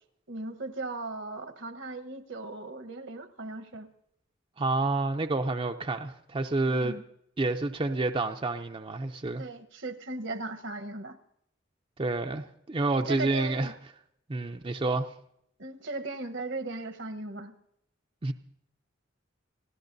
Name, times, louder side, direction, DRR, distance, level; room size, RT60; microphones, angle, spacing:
voice 1, 0.3-3.9 6.7-7.0 9.4-11.2 13.1-13.7 15.6-17.5, right 2 dB, 70° right, 1.1 m, -37 dB
voice 2, 4.6-7.0 7.4-9.4 12.0-13.7 14.3-15.1 18.2-18.3, right 2 dB, 30° right, 0.5 m, -29 dB
29.0 x 15.5 x 2.7 m
head